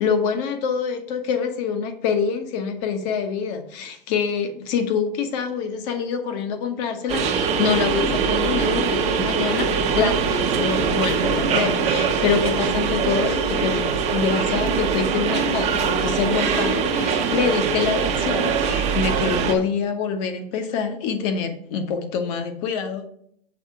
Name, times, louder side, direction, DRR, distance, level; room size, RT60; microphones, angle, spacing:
voice 1, 0.0-23.1, left 6 dB, 45° left, 7 dB, 1.1 m, -25 dB
sound 1, 7.1-19.5, right 5 dB, 20° right, 0.8 m, -22 dB
6.5 x 3.6 x 5.6 m, 0.68 s
hypercardioid pair, 140°, 30 cm